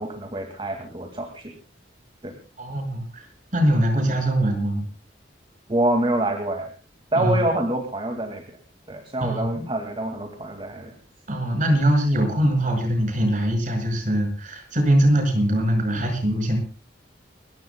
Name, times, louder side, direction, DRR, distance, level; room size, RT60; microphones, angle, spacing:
voice 1, 0.0-1.5 2.2-2.3 5.7-6.7 7.1-8.4 8.9-10.9 11.7-11.8, right 1 dB, 30° right, 4 dB, 2.1 m, -26 dB
voice 2, 2.6-3.3 3.5-4.8 7.2-7.4 9.2-9.6 11.3-16.6, right 1 dB, 45° right, 4 dB, 5.9 m, -22 dB
30.0 x 15.5 x 2.2 m, 0.32 s
head